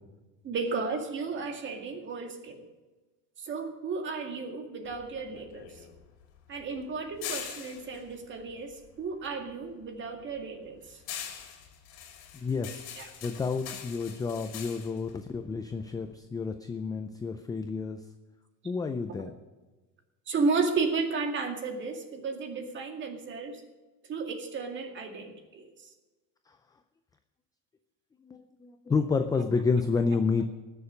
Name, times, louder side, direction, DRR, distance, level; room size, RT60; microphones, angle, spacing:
voice 1, 0.4-2.6 3.4-5.7 6.5-11.0 13.0-13.1 19.1-19.2 20.3-23.6 24.1-25.7, right 4 dB, 30° right, 5 dB, 2.0 m, -33 dB
sound 1, 4.8-9.4 9.7-16.1, left 9 dB, 65° left, 2.9 m, -43 dB
voice 2, 12.4-12.8 13.2-18.0 18.6-19.3 28.2-30.5, left 4 dB, 10° left, 7 dB, 0.4 m, -30 dB
19.5 x 7.2 x 5.2 m, 1.2 s
cardioid pair, 155°, 37 cm